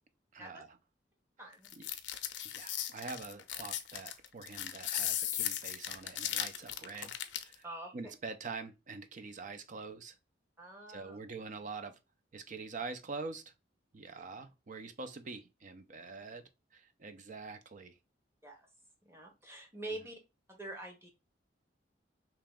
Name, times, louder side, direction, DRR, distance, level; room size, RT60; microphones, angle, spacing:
voice 1, 0.3-0.8 1.4-1.5 1.8-1.9 2.4-7.6 7.9-10.2 10.9-12.0 12.3-13.5 13.9-18.0 19.9-20.0, right 4 dB, 45° right, 0.5 m, -45 dB
sound 1, 1.6-7.5, left 11 dB, 80° left, 0.5 m, -37 dB
voice 2, 7.6-8.1 10.6-11.2 18.4-18.7 19.0-20.2 20.5-21.1, right 1 dB, 15° right, 1.0 m, -45 dB
2.9 x 2.9 x 3.5 m
head